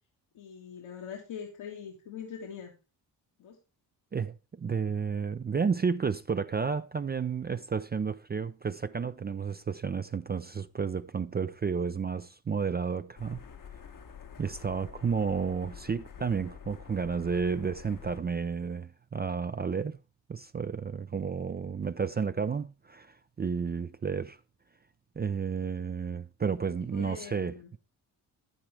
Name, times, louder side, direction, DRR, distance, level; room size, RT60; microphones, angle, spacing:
voice 1, 0.3-2.7 3.4-3.6 26.9-27.7, left 7 dB, 75° left, 1.7 m, -42 dB
voice 2, 4.1-13.4 14.4-20.0 20.3-24.4 25.2-27.8, right 6 dB, 20° right, 0.4 m, -32 dB
sound 1, 13.2-18.2, left 7 dB, 40° left, 1.0 m, -48 dB
9.8 x 9.1 x 3.3 m
supercardioid pair, 50°, 48 cm